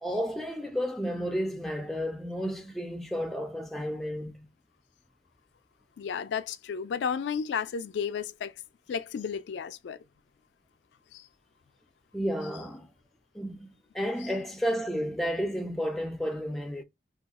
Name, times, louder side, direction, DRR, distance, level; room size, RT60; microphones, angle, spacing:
voice 1, 0.0-4.5 12.1-12.9 13.3-13.7 13.9-16.8, equal, ahead, 0.3 m, -32 dB
voice 2, 6.0-8.5 8.9-10.0 11.1-11.2, left 6 dB, 80° left, 0.3 m, -32 dB
2.8 x 2.3 x 3.5 m
head